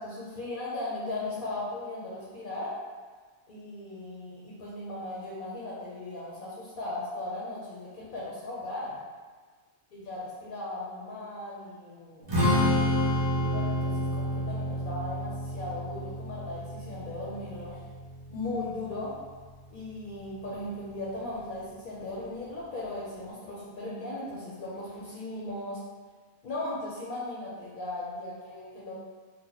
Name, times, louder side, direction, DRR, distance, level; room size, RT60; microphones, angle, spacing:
voice 1, 0.0-2.7 3.5-9.0 9.9-12.4 13.4-17.8 18.3-19.1 19.7-25.8 26.4-28.9, left 2 dB, 60° left, -7 dB, 0.8 m, -37 dB
Strum, 12.3-18.6, left 1 dB, 25° right, 0.6 m, -29 dB
2.7 x 2.2 x 3.9 m, 1.5 s
omnidirectional pair, 1.1 m